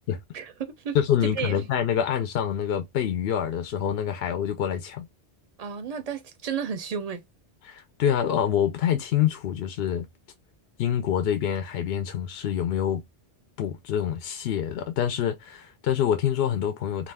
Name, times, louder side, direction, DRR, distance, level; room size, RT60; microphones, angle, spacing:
voice 1, 0.3-1.0 1.2-1.5 5.6-7.2, right 7 dB, 50° right, 0.5 m, -32 dB
voice 2, 0.9-5.1 7.6-10.1 10.8-13.0 13.6-17.1, left 9 dB, 70° left, 0.8 m, -26 dB
2.4 x 2.3 x 3.3 m
omnidirectional pair, 1.1 m